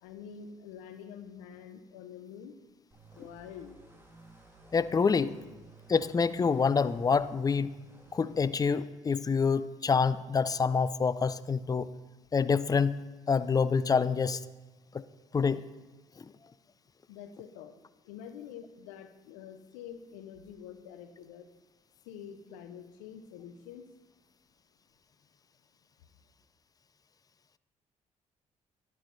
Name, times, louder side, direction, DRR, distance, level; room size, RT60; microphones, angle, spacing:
voice 1, 0.0-2.5 3.1-3.8 17.1-17.7 18.0-21.5 22.1-23.9, left 8 dB, 80° left, 10 dB, 0.5 m, -46 dB
sound 1, 2.9-8.4, right 3 dB, 15° right, 1.5 m, -56 dB
voice 2, 4.7-5.3 5.9-7.7 8.1-11.9 12.3-13.0 13.3-14.4 15.3-15.6, left 5 dB, 25° left, 16 dB, 0.3 m, -26 dB
11.0 x 6.2 x 2.6 m, 1.2 s
hypercardioid pair, 45°, 16 cm